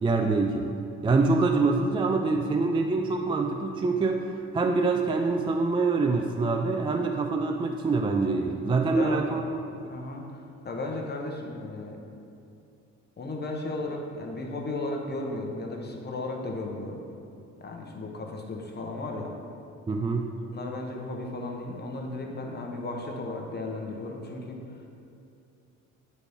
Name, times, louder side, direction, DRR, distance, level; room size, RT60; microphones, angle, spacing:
voice 1, 0.0-0.8 1.0-9.4 19.9-20.4, right 3 dB, 15° right, 4 dB, 0.3 m, -25 dB
voice 2, 8.9-9.4 9.9-12.0 13.2-17.0 17.6-19.3 20.5-24.6, left 2 dB, 35° left, 1 dB, 0.9 m, -35 dB
9.2 x 4.1 x 3.4 m, 2.7 s
cardioid pair, 90°, 30 cm